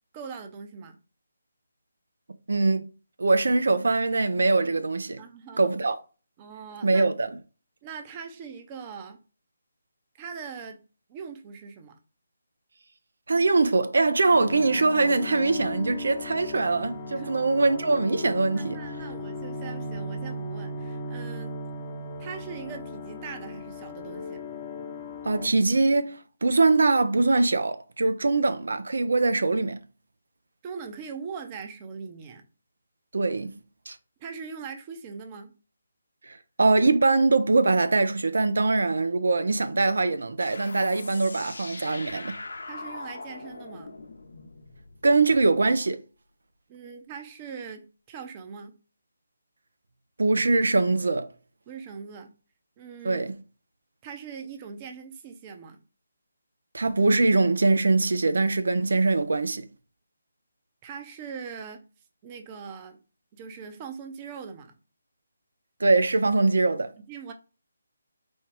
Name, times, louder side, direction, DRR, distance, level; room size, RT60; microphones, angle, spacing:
voice 1, 0.1-1.0 5.2-5.7 6.4-7.0 7.8-9.2 10.2-10.8 11.1-12.0 17.2-17.3 18.6-21.5 22.2-24.4 30.6-32.4 34.2-35.5 42.7-44.0 46.7-48.8 51.7-52.3 52.8-53.2 54.0-55.8 60.8-61.8 62.2-63.0 63.3-64.7 67.0-67.3, right 6 dB, 25° right, 0.7 m, -41 dB
voice 2, 2.5-2.9 3.2-5.2 5.6-6.0 6.8-7.3 13.3-18.8 25.2-29.8 33.1-33.6 33.9-34.0 36.2-42.3 45.0-46.0 50.2-51.3 53.0-53.3 56.7-59.7 65.8-66.9, right 3 dB, 75° right, 0.5 m, -22 dB
sound 1, 14.3-25.5, left 2 dB, 25° left, 0.8 m, -37 dB
sound 2, 40.4-45.7, left 3 dB, 75° left, 0.9 m, -41 dB
4.4 x 2.3 x 4.6 m
figure-of-eight pair, 155°, 0 cm